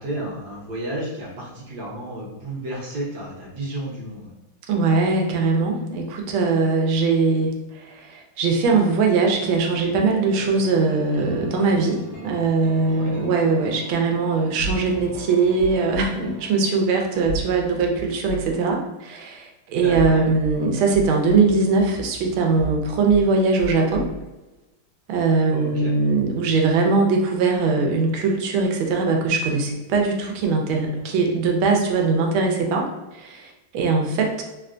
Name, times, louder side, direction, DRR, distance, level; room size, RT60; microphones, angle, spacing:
voice 1, 0.0-4.3 12.9-13.1 19.8-20.2 25.5-26.0, right 1 dB, 60° right, -5 dB, 1.3 m, -32 dB
voice 2, 4.7-24.1 25.1-32.9 33.1-34.4, right 4 dB, 90° right, 2 dB, 1.4 m, -21 dB
sound 1, 9.3-17.2, equal, 55° left, 0.6 m, -41 dB
sound 2, 14.6-16.1 17.3-18.6 19.8-20.6 20.9-23.3 23.6-24.2, right 4 dB, 70° left, 1.3 m, -33 dB
3.5 x 2.2 x 2.4 m, 1.1 s
omnidirectional pair, 2.2 m